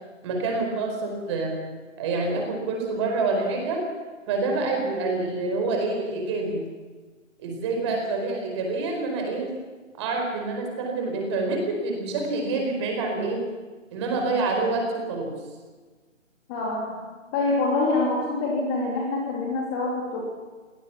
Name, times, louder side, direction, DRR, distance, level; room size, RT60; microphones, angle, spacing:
voice 1, 0.2-1.5 2.0-3.8 4.3-6.7 7.4-9.5 9.9-13.4 13.9-15.3, right 3 dB, 20° right, 2 dB, 4.7 m, -27 dB
voice 2, 16.5-17.0 17.3-20.2, left 3 dB, 15° left, -2 dB, 3.0 m, -25 dB
24.0 x 18.0 x 7.3 m, 1.4 s
figure-of-eight pair, 155°, 39 cm